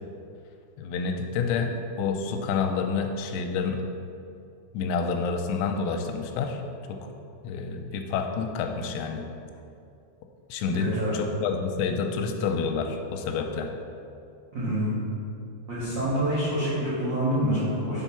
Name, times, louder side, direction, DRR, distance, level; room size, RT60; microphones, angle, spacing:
voice 1, 0.8-3.8 4.7-6.6 6.9-7.1 7.4-9.3 10.5-13.7, left 5 dB, 90° left, 4 dB, 3.3 m, -28 dB
voice 2, 10.7-11.1 14.5-15.0 15.7-18.0, equal, 75° right, -11 dB, 1.5 m, -27 dB
7.8 x 4.6 x 5.7 m, 2.6 s
omnidirectional pair, 6.0 m